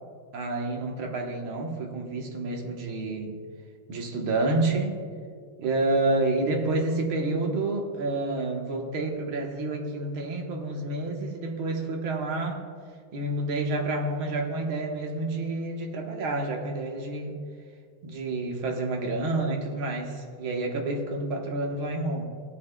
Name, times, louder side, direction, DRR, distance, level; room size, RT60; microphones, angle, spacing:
voice 1, 0.3-3.4 3.9-5.0 5.6-12.7 13.1-17.4 18.0-22.2, right 2 dB, 85° right, 1 dB, 2.0 m, -29 dB
18.0 x 8.3 x 2.2 m, 2.1 s
omnidirectional pair, 2.2 m